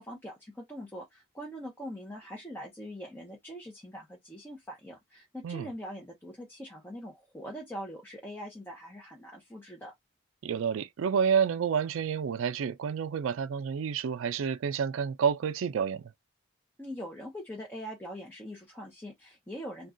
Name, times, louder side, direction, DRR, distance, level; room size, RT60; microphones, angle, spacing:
voice 1, 0.0-9.9 16.8-19.9, equal, 10° left, 0.6 m, -42 dB
voice 2, 10.4-16.0, right 7 dB, 70° right, 0.3 m, -29 dB
2.3 x 2.2 x 3.7 m
head